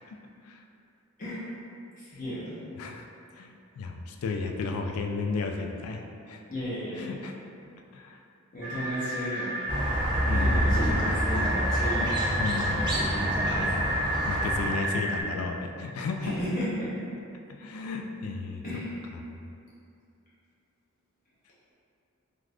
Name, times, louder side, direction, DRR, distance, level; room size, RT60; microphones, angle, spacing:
voice 1, 2.0-2.5 6.5-7.2 8.5-9.6 10.3-12.1 12.7-13.9 16.2-16.9 18.6-19.0, equal, 40° left, -10 dB, 0.6 m, -34 dB
voice 2, 3.4-6.0 6.3-6.4 6.9-7.3 7.9-8.2 10.3-10.8 12.4-12.8 13.6-16.3 17.5-18.6, left 4 dB, 80° left, 3 dB, 0.3 m, -33 dB
sound 1, 8.6-15.2, right 1 dB, 70° right, 0.6 m, -31 dB
Squeak, 9.7-14.7, equal, 20° right, 0.5 m, -28 dB
2.4 x 2.4 x 3.3 m, 2.6 s
head